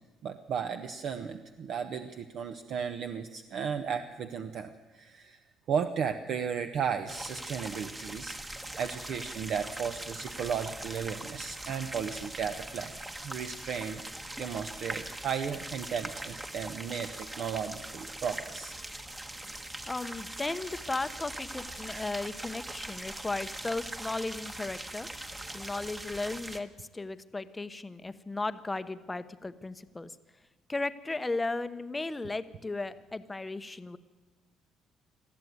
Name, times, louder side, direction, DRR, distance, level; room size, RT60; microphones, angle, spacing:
voice 1, 0.2-5.4 5.7-8.4 8.8-12.9 13.2-14.0 14.4-18.7 21.9-22.1, right 7 dB, 50° right, 8 dB, 0.9 m, -35 dB
sound 1, 7.1-26.6, right 1 dB, 15° right, 1.2 m, -41 dB
voice 2, 19.9-25.1 25.5-30.2 30.7-34.0, left 3 dB, 10° left, 12 dB, 0.8 m, -35 dB
20.5 x 14.0 x 9.4 m, 1.3 s
cardioid pair, 150°, 0 cm